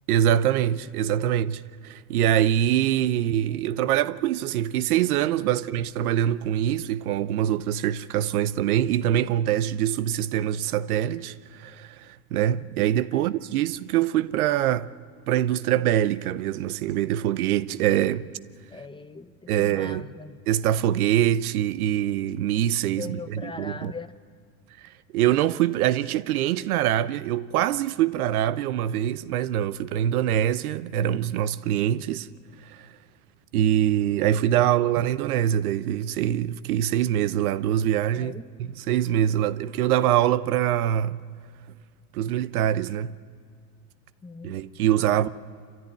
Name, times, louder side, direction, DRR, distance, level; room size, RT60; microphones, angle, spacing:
voice 1, 0.1-14.9 15.3-18.3 19.5-20.0 20.5-23.2 23.4-23.9 25.1-32.3 32.7-32.9 33.5-38.3 38.9-41.2 42.1-43.1 44.4-45.3, right 11 dB, 85° right, 0.8 m, -24 dB
voice 2, 0.7-1.4 3.5-3.9 5.5-5.9 13.1-13.3 18.7-20.5 23.0-24.1 38.2-38.5 44.2-45.3, left 4 dB, 10° left, 0.8 m, -42 dB
27.0 x 14.0 x 9.7 m
supercardioid pair, 105°, 43 cm